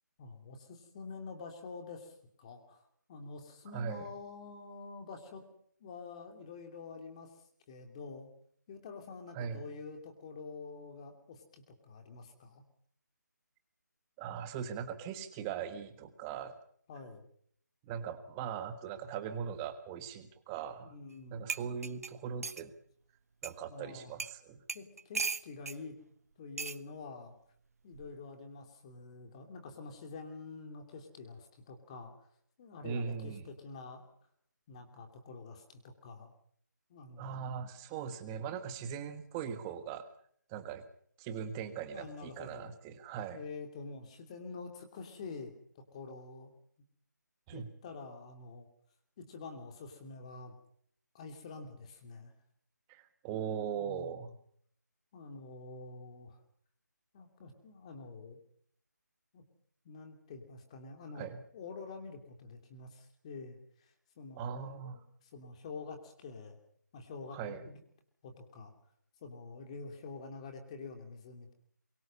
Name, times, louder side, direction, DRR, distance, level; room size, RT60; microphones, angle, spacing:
voice 1, 0.2-2.8 3.1-5.4 5.8-7.3 7.7-8.3 8.7-12.6 16.9-17.2 20.8-21.5 23.7-24.1 24.7-25.9 26.4-27.3 27.8-32.1 32.6-34.0 34.7-36.3 36.9-37.7 41.9-42.7 43.3-46.5 47.5-48.7 49.2-50.5 51.1-52.3 53.8-54.3 55.1-56.4 57.1-58.4 59.3-59.4 59.8-66.6 66.9-67.8 68.2-68.7 69.2-71.5, left 4 dB, 20° left, 5 dB, 2.9 m, -47 dB
voice 2, 3.7-4.1 9.3-9.7 14.2-16.5 17.8-20.9 21.3-22.7 23.4-24.6 32.8-33.4 37.2-40.0 40.5-40.8 41.2-43.4 47.5-47.7 52.9-54.3 61.1-61.4 64.4-65.0 67.3-67.7, right 7 dB, 10° right, 10 dB, 1.5 m, -40 dB
sound 1, 21.1-21.2 21.5-22.7 23.4-23.5 24.2-24.4 24.7-25.8 26.6-26.8 27.9-28.2, right 4 dB, 55° right, 1.1 m, -38 dB
26.0 x 23.5 x 5.5 m, 0.63 s
figure-of-eight pair, 170°, 10 cm